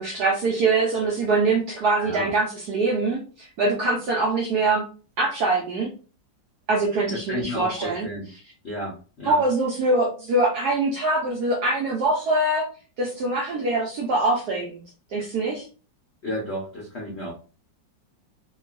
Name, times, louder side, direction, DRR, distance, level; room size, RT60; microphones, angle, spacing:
voice 1, 0.0-4.8 5.2-5.9 6.7-8.1 9.2-12.7 13.0-14.8 15.1-15.6, right 2 dB, 65° right, -2 dB, 1.1 m, -23 dB
voice 2, 2.0-2.3 7.1-8.3 8.6-9.4 16.2-17.3, left 1 dB, 45° left, -5 dB, 0.9 m, -32 dB
3.0 x 2.6 x 2.4 m, 0.37 s
omnidirectional pair, 2.1 m